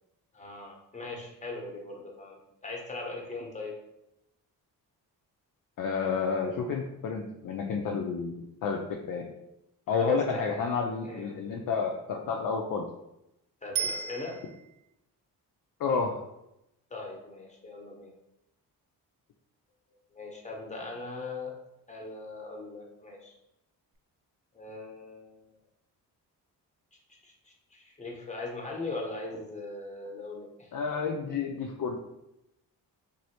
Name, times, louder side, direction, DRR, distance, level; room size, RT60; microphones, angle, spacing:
voice 1, 0.3-2.4 2.6-3.7 10.0-10.7 11.0-11.4 13.6-14.4 16.9-18.1 20.1-21.5 21.9-23.3 24.5-25.5 27.2-27.3 27.7-30.7, left 3 dB, 15° left, 0 dB, 0.9 m, -40 dB
voice 2, 5.8-9.3 9.9-12.9 15.8-16.2 30.7-32.0, left 5 dB, 45° left, 1 dB, 0.5 m, -30 dB
Bicycle bell, 13.8-14.9 23.9-24.0, right 7 dB, 60° right, 0.5 m, -34 dB
3.0 x 2.6 x 2.8 m, 0.87 s
hypercardioid pair, 45°, 46 cm